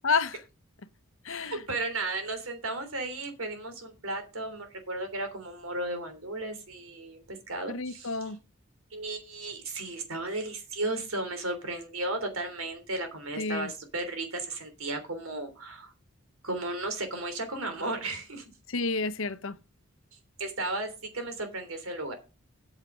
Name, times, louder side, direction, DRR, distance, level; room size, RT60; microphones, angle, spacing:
voice 1, 0.0-0.4 1.2-1.6 7.7-8.4 13.4-13.7 18.7-19.5, left 4 dB, 65° left, 0.9 m, -30 dB
voice 2, 1.3-8.2 8.9-15.9 16.4-18.4 20.4-22.1, right 2 dB, 75° right, 3.3 m, -34 dB
8.9 x 6.7 x 6.3 m
head